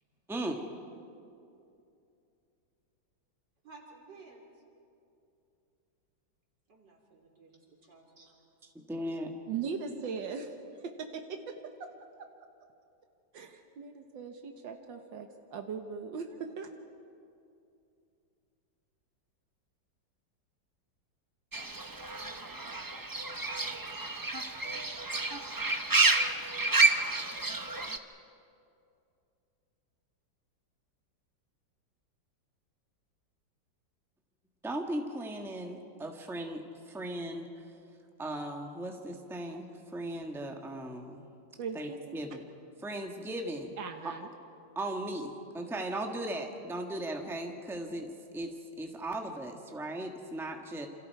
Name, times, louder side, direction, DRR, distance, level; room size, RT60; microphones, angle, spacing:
voice 1, 0.3-0.6 8.9-9.3 34.6-37.7 38.2-41.2 41.7-42.4 42.8-43.7 44.0-44.1 44.7-50.9, right 1 dB, ahead, 2 dB, 1.4 m, -37 dB
voice 2, 3.6-4.5 6.7-8.3, right 3 dB, 65° right, 0 dB, 3.9 m, -54 dB
voice 3, 9.5-11.5 11.8-11.9 13.3-16.7 41.6-42.2 43.8-44.3, right 6 dB, 85° right, 5 dB, 1.9 m, -39 dB
Fowl / Bird, 21.5-28.0, right 3 dB, 35° right, 0.3 m, -30 dB
28.0 x 27.5 x 4.7 m, 2.6 s
omnidirectional pair, 2.0 m